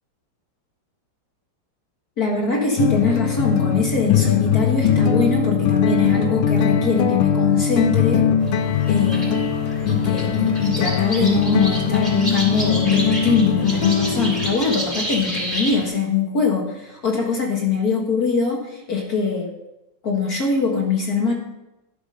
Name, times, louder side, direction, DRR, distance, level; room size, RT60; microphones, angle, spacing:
voice 1, 2.2-8.2 8.9-9.5 9.9-19.5 20.0-21.3, left 4 dB, 50° left, -1 dB, 2.1 m, -22 dB
sound 1, 2.8-14.5, left 7 dB, 80° left, 1.5 m, -20 dB
sound 2, 8.4-15.9, right 1 dB, 15° right, 4.1 m, -30 dB
12.0 x 7.0 x 5.4 m, 0.92 s
omnidirectional pair, 2.3 m